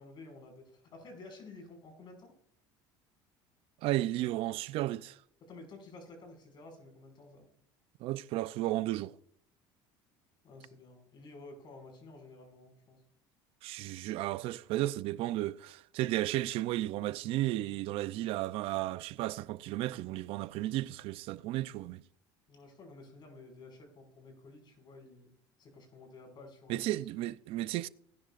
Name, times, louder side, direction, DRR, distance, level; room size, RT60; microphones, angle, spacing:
voice 1, 0.0-2.3 5.4-7.5 10.4-13.0 22.5-25.3 25.6-27.0, left 2 dB, 45° left, 5.6 m, -52 dB
voice 2, 3.8-5.2 8.0-9.2 13.6-22.0 26.7-27.9, right 16 dB, 65° right, 0.5 m, -33 dB
19.0 x 10.5 x 2.5 m
supercardioid pair, 110°, 10 cm